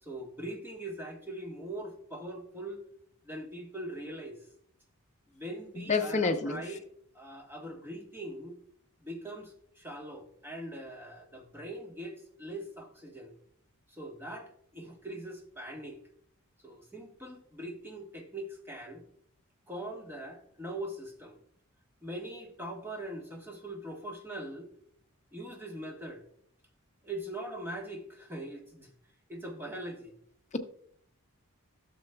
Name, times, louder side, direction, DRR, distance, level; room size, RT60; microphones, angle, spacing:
voice 1, 0.0-2.8 3.2-4.4 5.3-6.9 7.1-8.6 9.0-13.3 13.9-16.0 16.6-19.0 19.7-21.4 22.0-24.7 25.3-26.2 27.0-28.9 29.3-30.1, right 1 dB, 10° right, 1 dB, 1.2 m, -41 dB
voice 2, 5.8-6.6, left 4 dB, 35° left, 6 dB, 0.6 m, -28 dB
12.0 x 6.9 x 2.2 m, 0.64 s
head